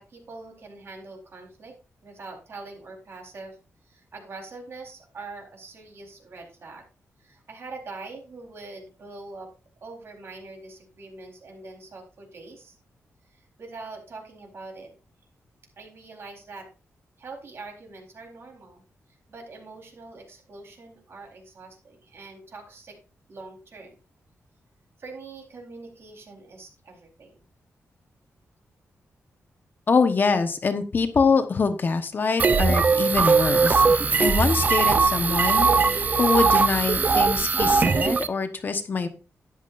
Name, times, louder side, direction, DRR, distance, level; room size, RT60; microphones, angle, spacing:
voice 1, 0.0-3.6 3.8-6.9 7.2-9.5 9.8-12.8 13.2-14.9 15.8-16.7 17.2-18.8 19.1-23.0 23.3-24.0 25.0-27.4, right 3 dB, 50° right, 1 dB, 4.1 m, -43 dB
voice 2, 29.9-39.1, left 4 dB, 40° left, 8 dB, 1.2 m, -24 dB
sound 1, 32.4-38.3, right 4 dB, 35° right, 0.7 m, -20 dB
13.5 x 10.5 x 2.6 m, 0.34 s
wide cardioid pair, 170°, 5 cm